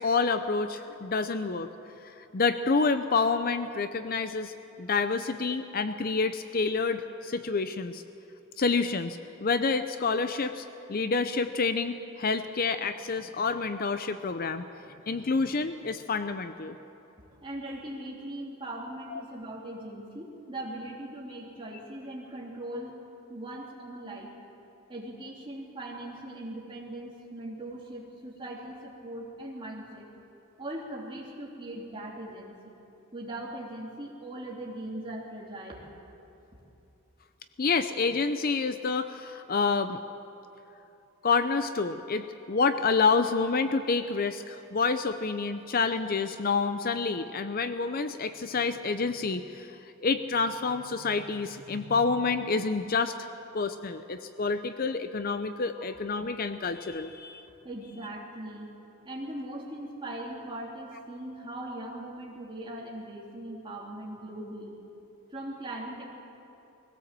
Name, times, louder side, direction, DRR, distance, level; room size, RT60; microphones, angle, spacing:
voice 1, 0.0-1.7 2.3-8.0 8.6-14.6 15.1-16.8 19.1-19.2 37.6-40.0 41.2-49.7 50.0-53.1 53.5-57.4, left 4 dB, 40° left, 10 dB, 0.6 m, -28 dB
voice 2, 17.4-22.9 23.3-24.3 24.9-30.1 30.6-32.7 33.1-35.8 57.6-58.7 59.0-64.7 65.3-66.0, right 1 dB, 20° right, -3 dB, 3.0 m, -40 dB
21.0 x 16.5 x 7.6 m, 2.9 s
head